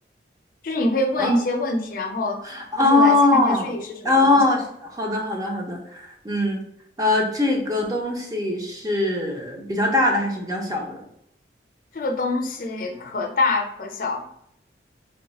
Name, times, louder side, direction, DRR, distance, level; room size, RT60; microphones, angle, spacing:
voice 1, 0.6-2.4 2.8-4.4 11.9-14.2, left 2 dB, 50° left, 3 dB, 0.5 m, -25 dB
voice 2, 2.4-3.7 4.0-4.6 4.9-6.6 7.0-11.0, left 2 dB, 20° right, 0 dB, 0.6 m, -21 dB
3.1 x 2.3 x 4.0 m, 0.76 s
head